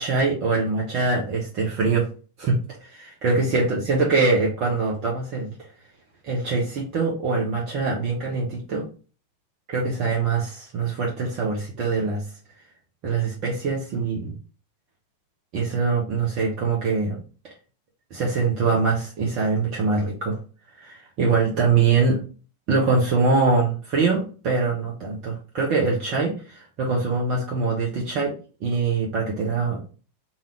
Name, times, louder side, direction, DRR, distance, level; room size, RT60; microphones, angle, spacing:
voice 1, 0.0-2.1 2.4-5.5 6.2-8.9 9.7-12.2 13.0-14.3 15.5-17.2 18.1-20.4 20.7-22.2 22.7-28.3 28.6-29.9, right 4 dB, 40° right, -3 dB, 1.4 m, -23 dB
4.3 x 3.6 x 3.3 m, 0.35 s
figure-of-eight pair, 90°, 0 cm